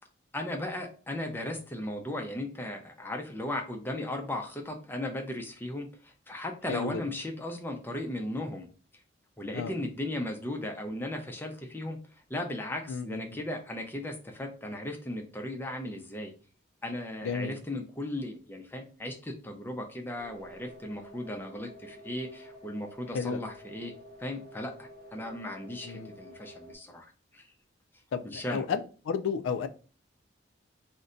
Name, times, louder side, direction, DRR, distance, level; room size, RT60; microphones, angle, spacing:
voice 1, 0.3-8.7 9.4-16.3 16.8-23.9 24.2-27.5 28.2-28.6, left 1 dB, 10° left, 0.5 m, -36 dB
voice 2, 6.7-7.0 9.5-9.7 12.9-13.4 17.2-17.5 23.1-23.4 25.8-26.1 28.1-28.2 28.5-29.7, left 6 dB, 85° left, 0.3 m, -32 dB
sound 1, 20.2-26.8, equal, 50° right, 0.7 m, -50 dB
2.6 x 2.1 x 3.7 m
head